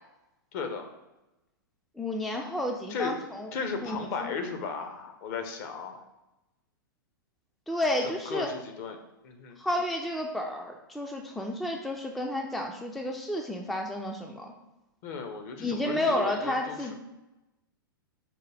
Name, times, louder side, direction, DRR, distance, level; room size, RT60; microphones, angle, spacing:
voice 1, 0.5-0.9 2.9-3.1 3.5-6.0 8.0-9.0 9.2-9.6 15.0-16.9, left 5 dB, 50° left, 6 dB, 0.7 m, -35 dB
voice 2, 2.0-3.5 3.8-4.3 7.7-8.5 9.6-14.5 15.6-16.9, left 1 dB, ahead, 2 dB, 0.3 m, -31 dB
4.9 x 2.2 x 3.3 m, 0.99 s
hypercardioid pair, 110°, 12 cm